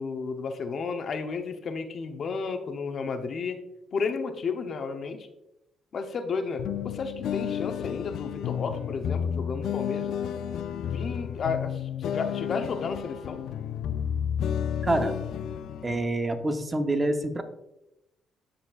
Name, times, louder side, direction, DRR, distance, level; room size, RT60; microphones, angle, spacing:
voice 1, 0.0-3.6 3.9-5.3 5.9-10.2 10.8-13.4, left 5 dB, 55° left, 7 dB, 0.8 m, -32 dB
sound 1, 6.6-16.1, left 8 dB, 75° left, 0.4 m, -31 dB
voice 2, 14.8-15.1 15.8-17.4, right 2 dB, 25° right, 7 dB, 0.8 m, -26 dB
12.5 x 4.3 x 2.4 m, 0.88 s
cardioid pair, 90°, 0 cm